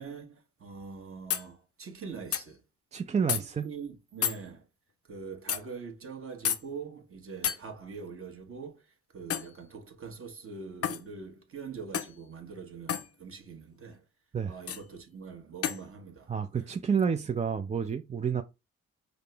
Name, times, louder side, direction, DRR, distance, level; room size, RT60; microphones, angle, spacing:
voice 1, 0.0-2.6 3.3-4.7 5.1-14.0 14.5-16.8 18.3-18.4, right 5 dB, 40° right, 1.1 m, -43 dB
sound 1, 0.8-0.9 1.3-1.5 2.3-2.5 3.3-3.4 4.2-4.4 5.5-5.6 6.4-6.6 7.4-7.6 9.3-9.5 10.8-11.0 11.9-12.2 12.9-13.1 14.7-14.8 15.6-15.8, left 8 dB, 45° left, 0.5 m, -30 dB
voice 2, 2.9-3.7 14.3-14.5 16.3-18.4, right 6 dB, 20° right, 0.3 m, -29 dB
5.1 x 2.0 x 3.3 m
supercardioid pair, 45°, 33 cm